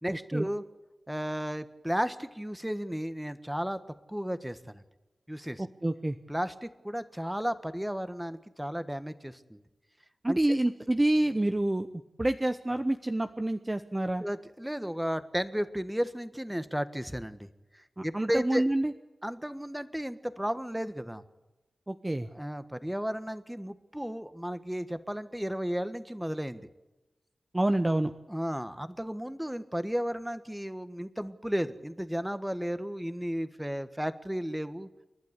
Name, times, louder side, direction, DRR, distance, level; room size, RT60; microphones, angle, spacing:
voice 1, 0.0-0.6 1.1-3.8 4.1-4.8 5.3-5.6 6.3-9.6 10.3-10.4 14.2-18.6 19.2-21.2 22.3-26.7 28.3-34.9, equal, 5° right, 12 dB, 1.4 m, -34 dB
voice 2, 5.6-6.2 10.2-11.9 12.2-14.2 18.0-18.9 21.9-22.3 27.5-28.1, right 1 dB, 20° right, 8 dB, 0.9 m, -27 dB
29.5 x 12.0 x 8.2 m, 1.1 s
wide cardioid pair, 75°, 0 cm